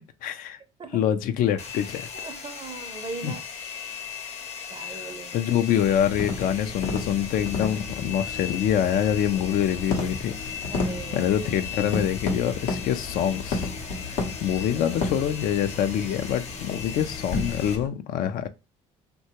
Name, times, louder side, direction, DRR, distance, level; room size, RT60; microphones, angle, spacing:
voice 1, 0.2-0.6 0.9-2.1 3.2-3.4 4.9-5.0 5.3-10.3 10.7-13.7 14.1-18.5, left 10 dB, 65° left, 0.4 m, -25 dB
Domestic sounds home sounds, 1.6-17.8, left 7 dB, 45° left, 0.8 m, -38 dB
voice 2, 2.1-3.4 4.7-5.3 10.7-11.3 14.5-14.9, right 4 dB, 35° right, 0.5 m, -39 dB
sound 1, 5.8-17.9, left 3 dB, 80° left, 0.8 m, -33 dB
2.9 x 2.2 x 2.8 m
supercardioid pair, 70°, 16 cm